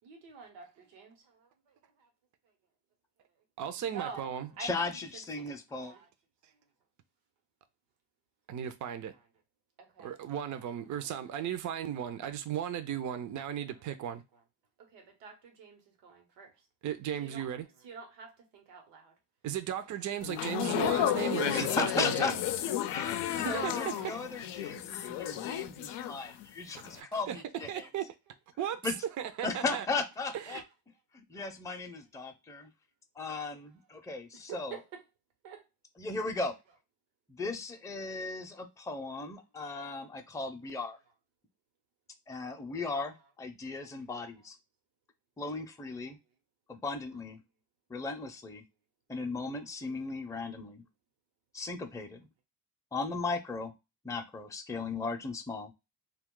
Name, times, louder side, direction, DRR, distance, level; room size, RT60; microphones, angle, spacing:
voice 1, 0.0-1.4 2.0-2.1 3.9-6.0 8.9-9.3 9.8-10.2 10.6-12.1 12.8-13.0 13.3-13.5 14.3-14.4 14.8-16.5 17.1-19.1 19.8-20.5 23.8-24.0 27.8-27.9 28.3-28.4 28.9-29.1 29.3-29.4 30.1-30.5 33.6-33.8 34.3-35.0 35.4-35.6 36.4-36.8 37.7-37.8 40.6-40.7 43.0-43.3 44.4-44.5 45.8-45.9 47.1-47.2, right 6 dB, 85° right, 1.0 m, -50 dB
voice 2, 3.6-4.5 8.5-9.1 10.0-14.2 16.8-17.7 19.4-22.3 23.3-24.2 26.9-27.4 27.7-28.1 28.6-28.9 29.2-29.9 30.3-30.6, right 10 dB, 45° right, 0.5 m, -36 dB
voice 3, 4.6-5.9 21.5-27.9 28.8-28.9 29.4-30.6 31.1-32.7 33.2-34.8 36.0-36.5 37.3-41.0 42.3-44.6 45.4-46.2 46.7-47.4 47.9-48.6 49.1-50.8 51.5-52.3 52.9-53.7 54.0-55.7, left 3 dB, 10° left, 0.5 m, -37 dB
sound 1, 20.2-26.5 26.8-27.0, left 11 dB, 75° left, 0.5 m, -32 dB
2.4 x 2.2 x 3.7 m
supercardioid pair, 65°, 42 cm